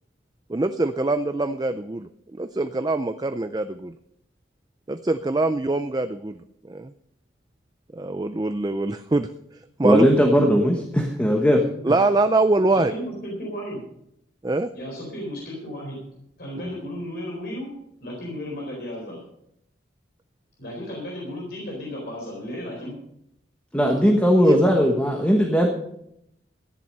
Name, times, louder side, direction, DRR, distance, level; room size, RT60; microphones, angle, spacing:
voice 1, 0.5-3.9 4.9-6.4 6.6-6.9 7.9-9.3 9.5-10.1 11.8-12.9 14.4-14.7 24.0-24.1 24.4-24.6, right 2 dB, 20° right, 9 dB, 0.4 m, -23 dB
voice 2, 9.8-11.6 16.6-16.7 23.7-25.7, equal, 10° left, 1 dB, 1.3 m, -18 dB
voice 3, 12.7-13.8 14.7-16.0 16.4-17.7 18.0-19.2 20.6-22.9, equal, 55° left, -2 dB, 4.1 m, -34 dB
13.5 x 10.5 x 5.4 m, 0.76 s
head